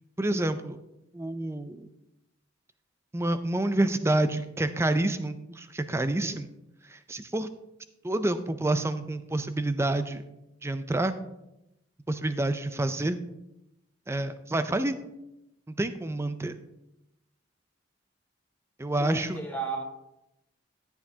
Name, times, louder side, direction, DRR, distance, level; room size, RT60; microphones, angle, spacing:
voice 1, 0.2-0.8 1.1-1.9 3.1-6.5 6.9-7.5 8.0-10.2 10.6-11.2 12.1-13.2 14.1-15.0 15.7-16.6 18.8-19.4, right 2 dB, 15° right, 11 dB, 0.4 m, -28 dB
voice 2, 19.0-19.8, right 4 dB, 10° left, -3 dB, 1.6 m, -33 dB
12.0 x 8.2 x 2.8 m, 0.89 s
head